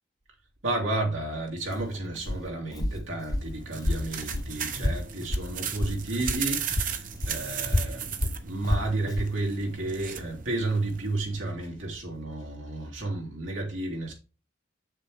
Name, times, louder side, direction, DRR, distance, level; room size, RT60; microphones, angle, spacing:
voice 1, 0.6-6.7 7.3-14.1, right 2 dB, 85° right, 2.9 m, -31 dB
Walk footsteps, 1.7-6.5 6.7-9.4, left 1 dB, 20° left, 0.5 m, -30 dB
sound 1, 3.4-11.3, right 8 dB, 45° right, 0.8 m, -36 dB
7.6 x 6.6 x 3.5 m
head